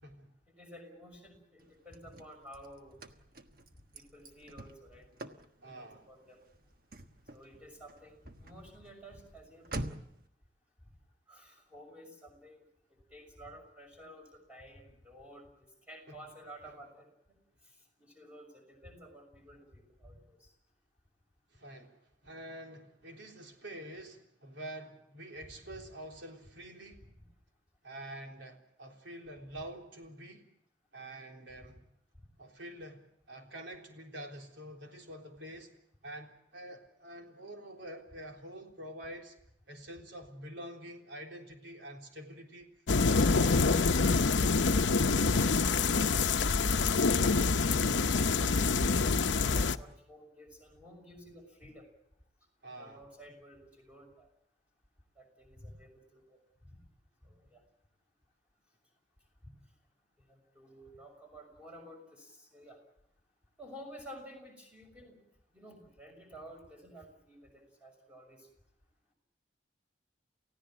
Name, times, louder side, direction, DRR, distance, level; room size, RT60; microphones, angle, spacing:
voice 1, 0.6-3.0 3.9-5.1 5.7-6.4 7.3-9.9 11.3-17.1 18.0-20.5 25.5-25.6 27.0-27.2 44.3-44.4 45.8-47.8 48.1-48.7 49.2-51.9 52.8-54.3 55.2-56.0 56.3-56.4 56.7-56.8 57.2-57.6 60.3-62.8 63.6-65.2 65.5-68.5, equal, 5° right, 2 dB, 6.1 m, -52 dB
Car / Slam, 1.6-10.3, right 1 dB, 50° right, 1.4 m, -47 dB
voice 2, 5.6-6.1 16.1-16.2 16.6-16.7 21.5-22.0 22.2-27.0 27.8-30.5 30.9-31.8 32.4-35.7 36.0-39.4 39.7-42.7 43.0-43.9 52.6-53.0, right 1 dB, 80° right, 2 dB, 3.7 m, -47 dB
sound 1, 42.9-49.8, left 4 dB, 80° left, 0.8 m, -26 dB
29.5 x 16.0 x 7.5 m, 0.77 s
head